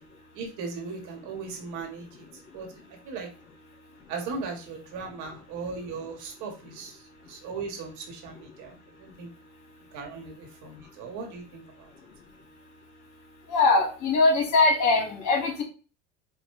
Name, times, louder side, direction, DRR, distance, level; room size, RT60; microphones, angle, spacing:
voice 1, 0.3-2.7 3.0-3.3 4.1-8.7 9.0-9.3 9.9-11.9, right 4 dB, 60° right, 2 dB, 1.6 m, -38 dB
voice 2, 13.5-15.6, left 3 dB, 55° left, 1 dB, 2.0 m, -22 dB
5.0 x 2.6 x 3.2 m, 0.36 s
supercardioid pair, 115°, 34 cm